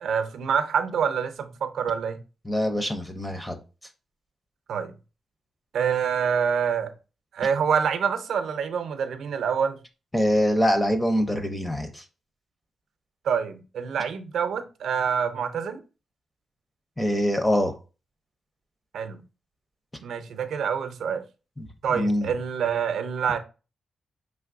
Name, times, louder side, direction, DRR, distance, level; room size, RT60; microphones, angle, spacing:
voice 1, 0.0-2.2 4.7-4.9 5.7-6.9 7.3-9.8 13.2-15.8 18.9-19.2 20.0-21.2 21.8-23.4, right 7 dB, 85° right, 0.5 m, -26 dB
voice 2, 2.5-3.6 10.1-12.0 17.0-17.7 21.9-22.3, equal, 10° left, 0.5 m, -24 dB
5.1 x 3.3 x 2.4 m
wide cardioid pair, 175°, 0 cm